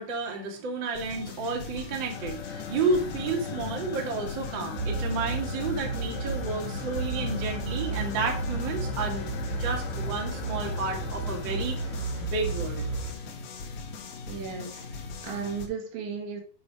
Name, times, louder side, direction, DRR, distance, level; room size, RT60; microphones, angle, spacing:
voice 1, 0.0-12.9, right 4 dB, 40° right, 0 dB, 1.6 m, -31 dB
sound 1, 0.9-15.7, left 5 dB, 65° left, 2.9 m, -40 dB
sound 2, 2.0-12.5, left 9 dB, 80° left, 3.3 m, -40 dB
sound 3, 4.8-13.1, right 3 dB, 60° right, 2.7 m, -33 dB
voice 2, 14.3-16.4, right 6 dB, 75° right, 1 dB, 4.1 m, -35 dB
9.3 x 5.2 x 4.8 m, 0.40 s
omnidirectional pair, 5.3 m